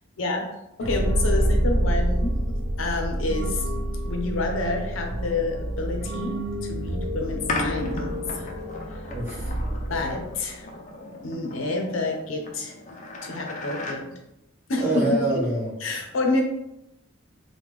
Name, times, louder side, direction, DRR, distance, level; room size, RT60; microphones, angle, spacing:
voice 1, 0.2-0.5 0.8-3.7 4.1-6.4 6.6-8.5 9.9-10.7 11.2-12.8 13.2-14.1 14.7-15.1 15.8-16.4, left 2 dB, 80° left, 2 dB, 0.6 m, -28 dB
sound 1, 0.8-10.5, right 1 dB, 55° right, 0.4 m, -27 dB
voice 2, 1.3-1.7 9.1-9.6 14.8-15.7, right 1 dB, 10° right, -6 dB, 0.9 m, -26 dB
sound 2, 7.5-14.0, left 2 dB, 40° left, 0.4 m, -36 dB
3.4 x 2.2 x 3.1 m, 0.88 s
head